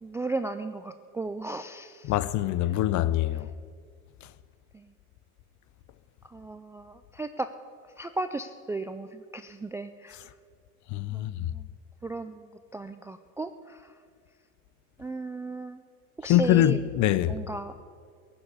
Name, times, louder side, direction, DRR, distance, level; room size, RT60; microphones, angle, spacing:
voice 1, 0.0-2.2 4.7-4.9 6.3-7.5 8.0-10.2 11.1-11.7 12.0-13.9 15.0-15.8 16.2-16.8 17.3-17.7, right 3 dB, 5° right, 0.3 m, -35 dB
voice 2, 2.0-3.5 10.9-11.5 16.3-17.4, left 13 dB, 45° left, 0.7 m, -24 dB
16.0 x 7.2 x 9.7 m
hypercardioid pair, 90°, 43 cm